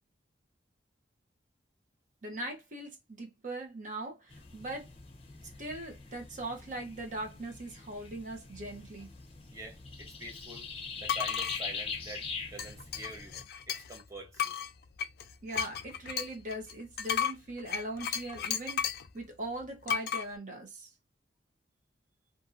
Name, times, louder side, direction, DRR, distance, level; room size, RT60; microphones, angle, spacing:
voice 1, 2.2-4.9 5.6-9.1 15.4-18.8 19.1-20.9, right 1 dB, 45° right, 1.0 m, -40 dB
sound 1, 4.3-13.4, left 5 dB, 30° left, 0.7 m, -42 dB
voice 2, 9.5-10.7 11.0-13.4 13.7-14.5, right 1 dB, 15° right, 0.9 m, -46 dB
sound 2, 11.0-11.6 12.6-14.0 14.4-19.1 19.9-20.2, left 8 dB, 55° left, 0.3 m, -34 dB
2.7 x 2.7 x 2.5 m
head